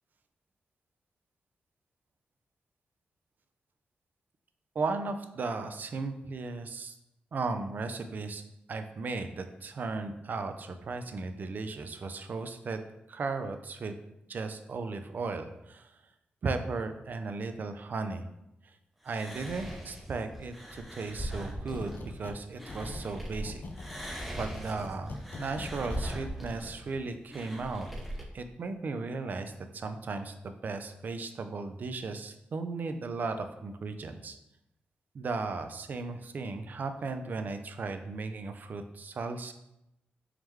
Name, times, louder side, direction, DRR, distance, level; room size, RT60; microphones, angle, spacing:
voice 1, 4.8-6.9 7.3-8.4 8.7-12.8 13.1-14.0 14.3-15.9 16.4-18.3 19.0-21.9 22.2-23.6 24.0-24.1 24.4-27.9 28.3-34.4 35.1-39.5, right 3 dB, 55° right, 7 dB, 0.4 m, -36 dB
sound 1, 19.0-23.4 23.7-28.2, equal, 5° right, 0.6 m, -40 dB
sound 2, 21.7-22.4 22.7-26.2, left 3 dB, 55° left, 0.4 m, -43 dB
3.6 x 3.1 x 3.1 m, 0.86 s
cardioid pair, 90°, 4 cm